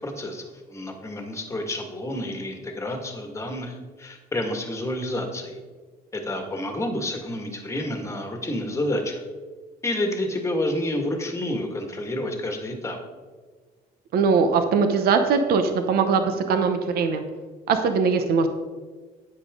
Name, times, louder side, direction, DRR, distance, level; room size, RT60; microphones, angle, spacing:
voice 1, 0.0-5.6 6.1-9.2 9.8-13.0, left 1 dB, 15° left, 3 dB, 1.7 m, -29 dB
voice 2, 14.1-17.2 17.7-18.5, right 5 dB, 65° right, 7 dB, 0.9 m, -21 dB
10.0 x 8.7 x 3.7 m, 1.4 s
cardioid pair, 110°, 17 cm